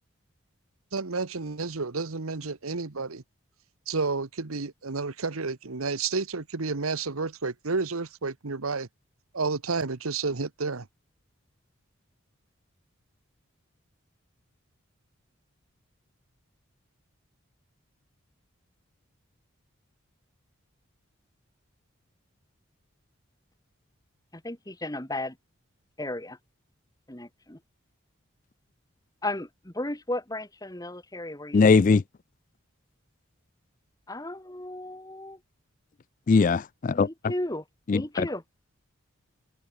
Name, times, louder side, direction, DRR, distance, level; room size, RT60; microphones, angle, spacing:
voice 1, 0.9-3.2 3.9-8.9 9.3-10.9, right 4 dB, 90° right, 1.2 m, -30 dB
voice 2, 24.3-25.4 26.0-26.4 27.1-27.6 29.2-31.8 34.1-35.4 36.9-38.4, left 1 dB, 15° left, 1.5 m, -35 dB
voice 3, 31.5-32.0 36.3-37.1 37.9-38.3, left 4 dB, 40° left, 0.3 m, -20 dB
head